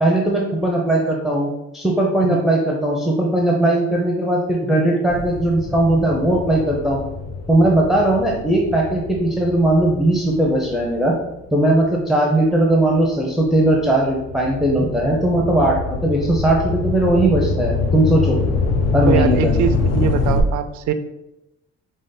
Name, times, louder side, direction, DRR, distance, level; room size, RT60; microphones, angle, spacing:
voice 1, 0.0-7.0 7.5-11.1 11.5-18.4 18.9-19.5, right 1 dB, ahead, -1 dB, 0.6 m, -18 dB
sound 1, 5.1-11.8 12.4-20.4, left 3 dB, 55° left, 0.6 m, -25 dB
voice 2, 19.1-20.9, right 8 dB, 75° right, 10 dB, 0.5 m, -22 dB
5.0 x 2.0 x 3.9 m, 0.91 s
cardioid pair, 90°, 30 cm